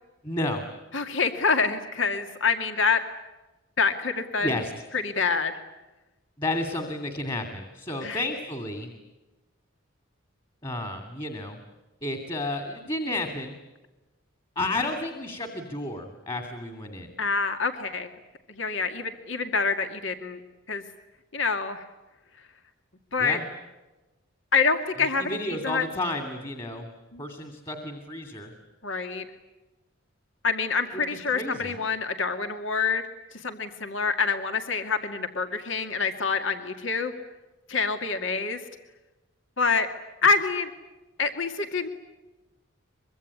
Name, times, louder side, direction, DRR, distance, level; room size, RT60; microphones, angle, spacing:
voice 1, 0.2-0.6 4.4-4.7 6.4-8.9 10.6-11.6 12.0-13.6 14.6-17.1 23.2-23.4 25.2-26.9 27.2-28.5 31.1-31.7, left 2 dB, 25° left, 6 dB, 2.5 m, -31 dB
voice 2, 0.9-3.0 3.8-4.6 4.9-5.6 8.0-8.2 17.2-18.2 18.5-20.4 20.7-20.8 21.3-21.8 23.1-23.4 24.5-25.4 25.6-25.8 27.1-27.2 28.8-29.2 30.4-33.0 33.3-37.1 37.7-38.6 39.6-39.9 40.2-40.7 41.2-41.9, left 5 dB, 65° left, 7 dB, 2.2 m, -26 dB
24.5 x 24.0 x 9.8 m, 1.1 s
head